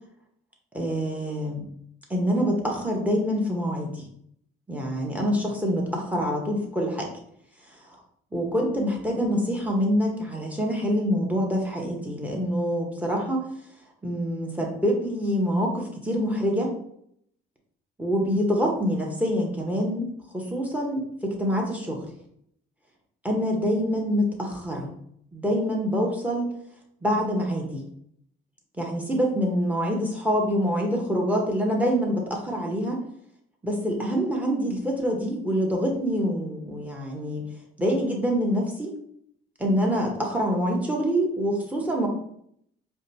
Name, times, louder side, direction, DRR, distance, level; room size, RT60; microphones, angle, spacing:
voice 1, 0.7-1.6 2.1-4.0 4.7-7.1 8.3-13.5 14.0-16.7 18.0-20.1 20.3-22.0 23.2-24.9 25.3-26.5 27.0-27.8 28.8-33.0 33.6-37.4 37.8-38.9 39.6-42.1, equal, 5° right, 0 dB, 1.0 m, -26 dB
4.7 x 2.3 x 2.8 m, 0.70 s
cardioid pair, 90°, 20 cm